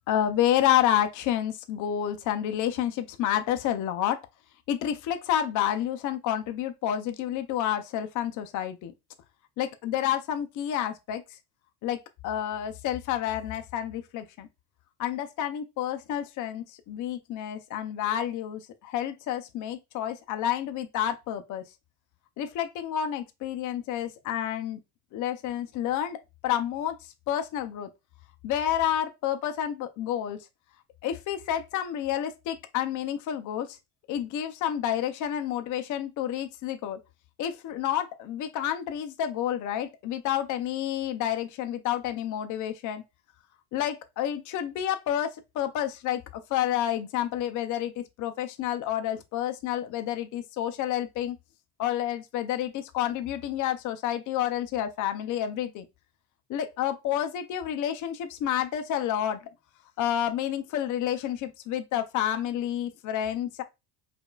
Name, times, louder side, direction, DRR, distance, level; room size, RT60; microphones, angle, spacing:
voice 1, 0.1-4.2 4.7-8.9 9.6-11.2 11.8-12.0 12.2-14.5 15.0-21.6 22.4-24.8 25.1-26.2 26.4-27.0 27.3-27.9 28.4-30.4 31.0-33.8 34.1-37.0 37.4-43.0 43.7-51.4 51.8-55.8 56.5-59.4 60.0-63.6, left 11 dB, 45° left, 0.5 m, -29 dB
5.0 x 2.4 x 2.3 m
cardioid pair, 125°, 44 cm